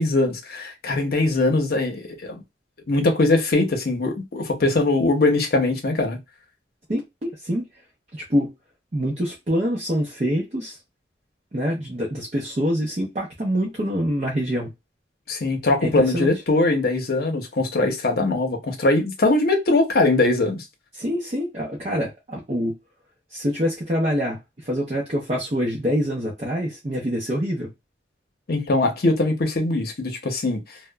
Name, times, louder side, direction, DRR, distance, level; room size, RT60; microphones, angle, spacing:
voice 1, 0.0-2.4 2.9-6.2 15.3-20.6 28.5-30.6, left 2 dB, 55° left, 0.7 m, -21 dB
voice 2, 6.9-7.6 8.1-8.5 8.9-10.8 11.5-14.7 15.8-16.3 20.9-22.8 23.3-27.7, equal, 40° right, 0.6 m, -25 dB
2.8 x 2.1 x 2.2 m
head